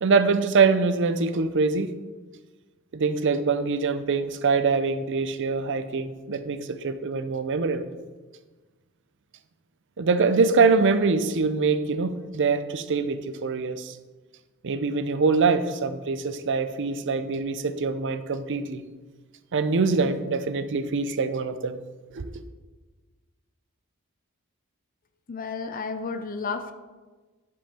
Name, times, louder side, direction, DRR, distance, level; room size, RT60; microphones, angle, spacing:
voice 1, 0.0-1.9 2.9-7.9 10.0-14.0 14.6-18.8 19.5-21.8 22.1-22.4, right 4 dB, 55° right, 11 dB, 0.6 m, -24 dB
voice 2, 25.3-26.7, left 4 dB, 40° left, 7 dB, 0.6 m, -32 dB
10.5 x 5.5 x 4.3 m, 1.3 s
head